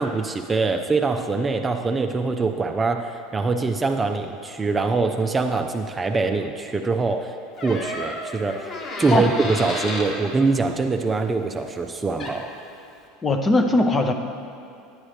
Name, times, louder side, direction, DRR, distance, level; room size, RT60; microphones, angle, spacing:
voice 1, 0.0-7.3 7.6-8.7 9.0-12.5, right 3 dB, 20° right, 5 dB, 0.5 m, -23 dB
Door, 7.6-10.1 11.9-12.0 12.2-12.6, left 1 dB, 45° left, 1.5 m, -32 dB
voice 2, 13.2-14.1, left 2 dB, 25° left, 5 dB, 0.8 m, -19 dB
10.5 x 9.6 x 3.2 m, 2.7 s
hypercardioid pair, 75°, 0 cm